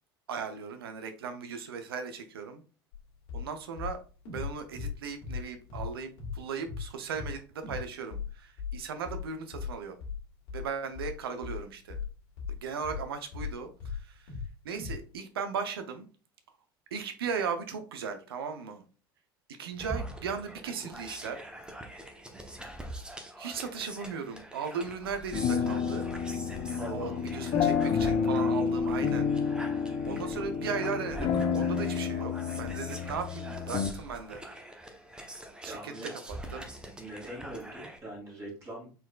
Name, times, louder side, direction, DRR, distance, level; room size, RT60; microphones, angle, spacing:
voice 1, 0.3-2.6 3.3-4.0 4.3-10.0 10.5-12.0 12.5-14.3 14.6-16.1 16.9-18.8 19.6-21.4 23.4-26.0 26.9-29.3 30.1-34.4 35.6-35.9 36.3-36.7, right 6 dB, 75° right, 8 dB, 0.5 m, -37 dB
sound 1, 2.9-3.0 3.3-3.5 3.8-5.9 6.2-6.4 6.7-6.9 7.1-7.4 7.6-7.9 8.1-13.6 13.8-14.5 14.8-15.0, left 6 dB, 55° left, 1.9 m, -37 dB
sound 2, 19.8-38.0, right 1 dB, 5° right, 0.8 m, -44 dB
sound 3, 25.3-33.9, left 6 dB, 35° left, 0.4 m, -29 dB
voice 2, 26.8-27.4 35.6-36.1 37.0-38.9, right 1 dB, 20° right, -4 dB, 2.2 m, -42 dB
4.1 x 3.9 x 2.3 m, 0.36 s
figure-of-eight pair, 70°, 13 cm